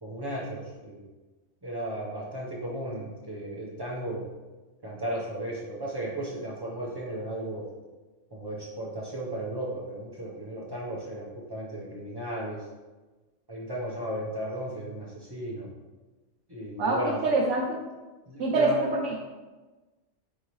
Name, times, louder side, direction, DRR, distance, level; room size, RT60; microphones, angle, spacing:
voice 1, 0.0-1.0 1.6-4.2 4.8-7.7 8.3-12.6 13.5-15.7 16.5-17.2 18.3-18.9, right 1 dB, 25° right, -5 dB, 0.6 m, -35 dB
voice 2, 16.8-17.8 18.4-19.2, right 2 dB, 75° right, -4 dB, 1.0 m, -25 dB
5.0 x 2.7 x 3.0 m, 1.2 s
omnidirectional pair, 1.3 m